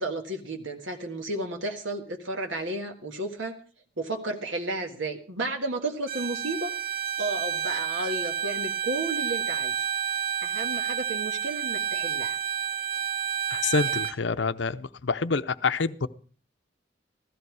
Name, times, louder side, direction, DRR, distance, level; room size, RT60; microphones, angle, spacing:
voice 1, 0.0-3.6 4.0-6.7 7.2-9.8 10.4-12.4, right 2 dB, 80° right, 4 dB, 1.6 m, -33 dB
Bowed string instrument, 6.1-14.2, right 8 dB, 50° right, 0.8 m, -30 dB
voice 2, 13.5-16.1, left 4 dB, 70° left, 13 dB, 0.7 m, -27 dB
15.0 x 14.0 x 4.7 m, 0.42 s
head